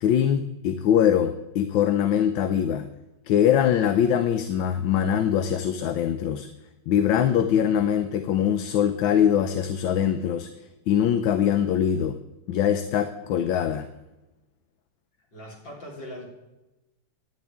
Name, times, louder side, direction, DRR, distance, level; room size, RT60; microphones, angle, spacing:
voice 1, 0.0-2.9 3.3-6.5 6.9-10.5 10.9-12.1 12.5-13.9, left 9 dB, 90° left, 9 dB, 1.5 m, -22 dB
voice 2, 15.3-16.3, equal, 70° left, -3 dB, 4.4 m, -40 dB
18.5 x 10.5 x 3.5 m, 1.0 s
omnidirectional pair, 2.1 m